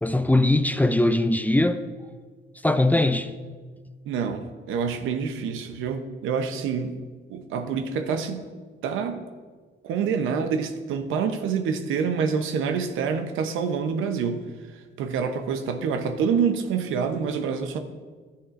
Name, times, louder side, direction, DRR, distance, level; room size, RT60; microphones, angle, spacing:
voice 1, 0.0-1.9 2.6-3.3, left 1 dB, 10° left, 0.4 m, -21 dB
voice 2, 4.1-7.0 7.3-8.5 8.8-9.2 9.8-14.4 14.7-17.8, right 6 dB, 90° right, 0.8 m, -27 dB
12.5 x 9.5 x 2.5 m
cardioid pair, 90°, 20 cm